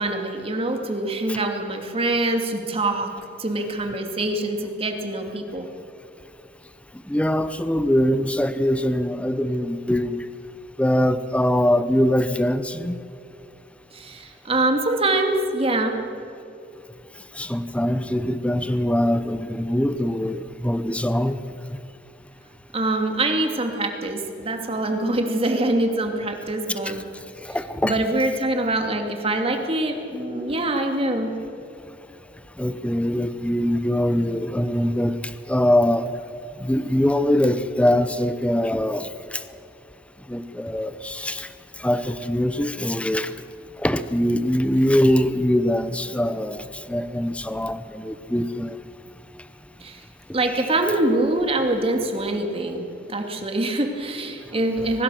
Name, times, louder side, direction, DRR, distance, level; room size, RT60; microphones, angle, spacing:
voice 1, 0.0-3.1 3.4-5.7 13.9-16.0 22.7-27.0 27.8-31.3 49.8-50.0 50.3-55.0, right 2 dB, 35° right, 4 dB, 2.5 m, -24 dB
voice 2, 7.1-10.2 10.8-13.0 17.3-21.4 26.8-27.0 27.4-28.0 32.6-36.2 36.6-39.4 40.3-41.5 41.8-43.3 43.8-48.8 50.5-50.7, left 1 dB, 5° left, 12 dB, 0.7 m, -23 dB
24.0 x 19.5 x 6.4 m, 2.7 s
head